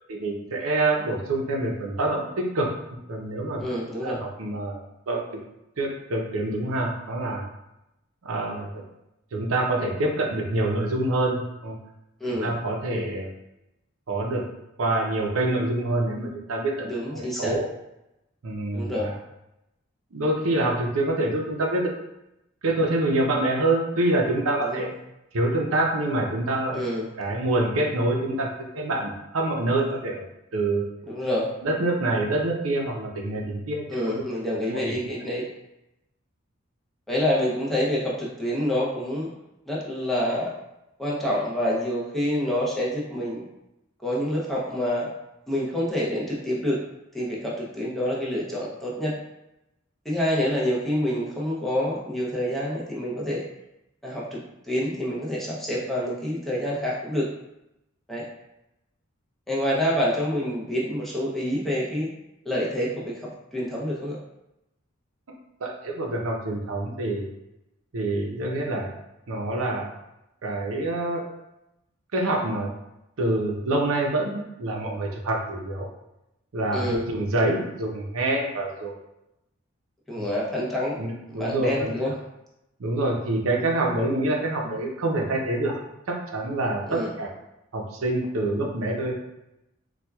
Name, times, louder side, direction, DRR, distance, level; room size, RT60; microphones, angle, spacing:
voice 1, 0.1-2.7 3.1-3.6 4.0-5.2 5.8-7.4 8.2-8.7 9.3-11.8 12.4-13.3 14.1-14.4 14.8-17.6 18.4-19.1 20.1-21.9 22.6-24.9 25.3-26.8 27.2-28.5 28.7-30.3 30.5-30.8 31.6-34.2 34.7-34.9 65.6-67.2 67.9-68.9 69.3-69.9 70.4-71.2 72.1-72.7 73.2-75.9 76.5-78.9 80.2-80.3 81.0-82.1 82.8-85.8 86.1-87.3 87.7-89.1, right 2 dB, 90° right, 0 dB, 0.6 m, -26 dB
voice 2, 3.6-4.2 12.2-12.5 16.8-17.5 18.7-19.1 24.6-24.9 26.7-27.1 31.1-31.5 33.9-35.4 37.1-39.3 39.7-40.6 41.0-43.4 44.0-45.1 45.5-46.8 47.1-49.2 50.0-53.5 54.0-54.4 54.6-57.3 58.1-58.2 59.5-62.1 62.4-64.2 76.7-77.0 80.1-81.0 81.3-82.1 86.8-87.1, equal, ahead, -6 dB, 0.6 m, -27 dB
4.2 x 2.3 x 2.3 m, 0.88 s
head